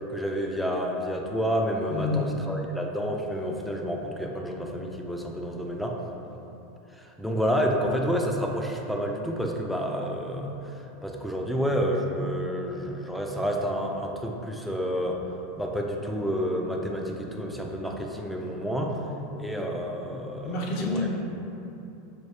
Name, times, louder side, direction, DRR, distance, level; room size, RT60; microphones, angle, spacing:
voice 1, 0.1-6.0 7.0-15.2 15.6-19.0 19.4-21.1, equal, ahead, 1 dB, 0.4 m, -29 dB
voice 2, 1.9-2.2 20.4-21.2, left 3 dB, 55° left, 0 dB, 0.6 m, -28 dB
5.2 x 2.3 x 3.3 m, 2.9 s
supercardioid pair, 135°, 0 cm